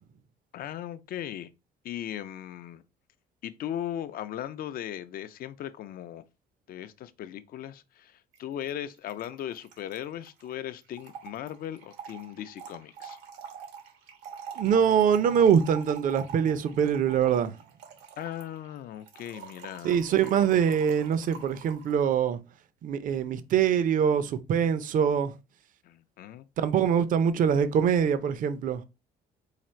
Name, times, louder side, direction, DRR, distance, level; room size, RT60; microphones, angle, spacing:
voice 1, 0.5-1.5 1.8-2.8 3.4-6.2 6.7-13.2 18.2-20.3 25.8-26.5, left 11 dB, 60° left, 0.5 m, -38 dB
Trickle dribble / Fill (with liquid), 8.3-8.4 8.7-8.8 8.9-22.0, right 7 dB, 90° right, 1.1 m, -46 dB
voice 2, 14.6-17.5 19.8-22.4 22.8-25.3 26.6-28.8, right 8 dB, 50° right, 0.6 m, -24 dB
4.9 x 2.4 x 4.3 m
cardioid pair, 110°, 17 cm